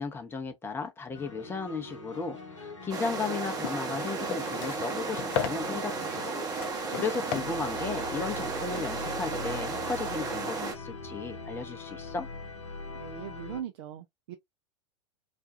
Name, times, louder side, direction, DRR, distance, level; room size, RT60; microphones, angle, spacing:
voice 1, 0.0-6.4 6.9-12.3, left 4 dB, 15° left, 0.7 m, -35 dB
sound 1, 1.1-13.6, left 3 dB, 80° left, 0.8 m, -42 dB
sound 2, 2.9-10.7, right 4 dB, 25° right, 0.8 m, -34 dB
sound 3, 3.0-9.1, left 9 dB, 50° left, 0.5 m, -38 dB
voice 2, 12.9-14.3, right 10 dB, 55° right, 0.4 m, -40 dB
2.4 x 2.3 x 2.5 m
figure-of-eight pair, 90°, 15 cm